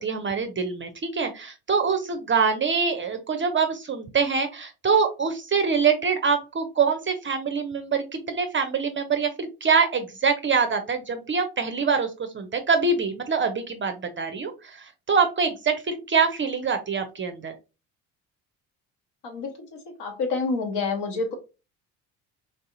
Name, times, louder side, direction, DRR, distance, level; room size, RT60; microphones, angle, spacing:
voice 1, 0.0-12.1 12.3-14.8 15.1-17.5, right 5 dB, 25° right, 7 dB, 0.5 m, -24 dB
voice 2, 19.2-21.3, left 4 dB, 60° left, 3 dB, 1.2 m, -28 dB
3.4 x 2.7 x 2.5 m, 0.29 s
hypercardioid pair, 55°, 46 cm